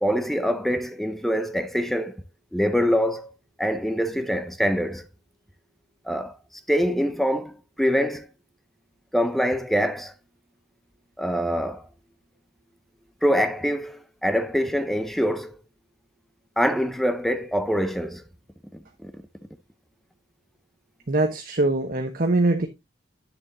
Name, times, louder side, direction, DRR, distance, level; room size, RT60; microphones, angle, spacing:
voice 1, 0.0-2.2 2.5-3.3 3.6-5.0 6.0-6.3 6.7-8.3 9.1-10.1 11.2-11.8 13.2-15.5 16.6-18.2 18.7-19.2, equal, ahead, 0.5 m, -24 dB
voice 2, 21.1-22.7, right 2 dB, 50° right, 0.9 m, -22 dB
10.0 x 7.0 x 2.6 m
head